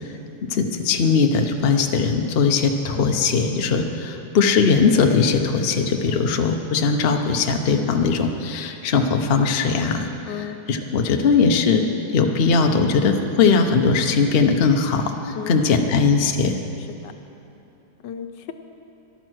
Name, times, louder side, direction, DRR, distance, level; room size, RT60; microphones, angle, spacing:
voice 1, 0.5-10.1 10.7-11.8 12.1-16.6, left 5 dB, 45° left, 4 dB, 0.8 m, -19 dB
voice 2, 10.3-10.6 15.3-15.7 17.0-17.1 18.0-18.5, left 9 dB, 80° left, 7 dB, 1.4 m, -33 dB
13.5 x 12.0 x 6.3 m, 2.8 s
omnidirectional pair, 1.9 m